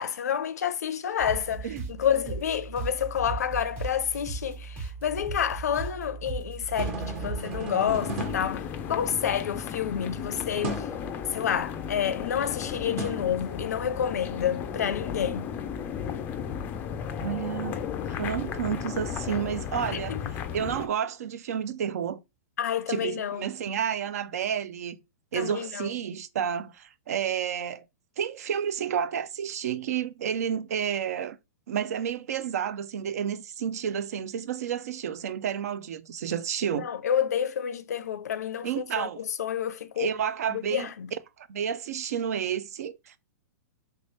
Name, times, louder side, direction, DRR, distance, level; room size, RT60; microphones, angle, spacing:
voice 1, 0.0-1.7 2.0-10.8 11.3-15.5 20.1-20.2 22.6-23.5 25.3-25.9 36.7-40.1 40.5-41.1, left 9 dB, 85° left, 0.5 m, -29 dB
sound 1, 1.2-7.7, right 4 dB, 25° right, 1.2 m, -37 dB
sound 2, 6.6-9.4 10.6-11.0 13.0-14.0, right 2 dB, 45° right, 1.2 m, -36 dB
sound 3, 7.9-20.9, left 8 dB, 20° left, 0.3 m, -35 dB
voice 2, 17.2-17.8 18.2-20.2 20.5-22.2 22.9-25.0 25.3-27.8 28.2-31.4 31.7-36.9 38.6-39.2 40.0-40.9 41.4-43.2, right 8 dB, 70° right, 0.4 m, -30 dB
3.2 x 2.9 x 3.1 m
hypercardioid pair, 140°, 9 cm